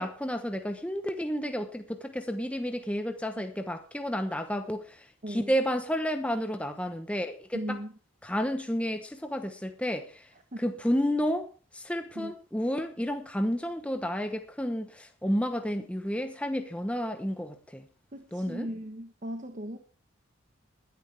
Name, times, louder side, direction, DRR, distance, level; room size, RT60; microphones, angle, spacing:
voice 1, 0.0-7.8 8.2-10.3 10.6-17.9 18.3-18.7, equal, 5° left, 0.9 m, -31 dB
voice 2, 7.5-7.9 10.5-10.6 12.1-12.3 18.1-19.8, equal, 35° right, 1.2 m, -37 dB
20.0 x 10.5 x 3.4 m
head